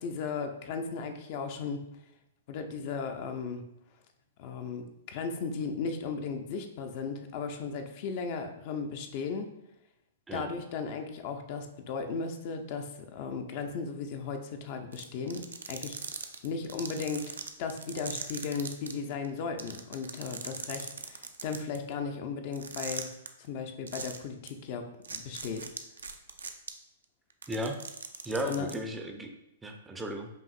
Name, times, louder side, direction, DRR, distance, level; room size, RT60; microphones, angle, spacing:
voice 1, 0.0-1.8 2.5-3.6 4.4-9.5 10.3-16.0 16.4-17.3 17.6-23.1 23.4-25.7 28.4-28.7, left 5 dB, 45° left, 6 dB, 0.4 m, -36 dB
sound 1, 14.9-18.9 19.2-19.3 19.6-21.8 22.5-23.3 23.9-24.2 24.5-24.6 25.0-26.7 27.3-28.7, right 5 dB, 80° right, 0.4 m, -39 dB
voice 2, 28.3-29.3 29.6-30.3, right 1 dB, 10° right, 4 dB, 0.4 m, -35 dB
5.3 x 2.5 x 2.4 m, 0.83 s
figure-of-eight pair, 110°, 0 cm